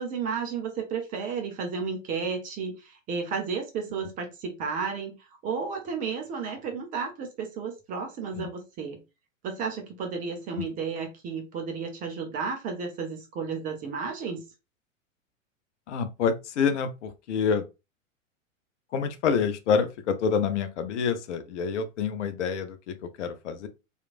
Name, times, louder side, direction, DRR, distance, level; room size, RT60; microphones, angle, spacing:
voice 1, 0.0-5.2 5.4-9.0 9.4-14.4, right 5 dB, 20° right, 0.5 m, -32 dB
voice 2, 15.9-17.6 18.9-23.7, left 6 dB, 60° left, 0.6 m, -27 dB
2.9 x 2.4 x 2.4 m
figure-of-eight pair, 105°, 39 cm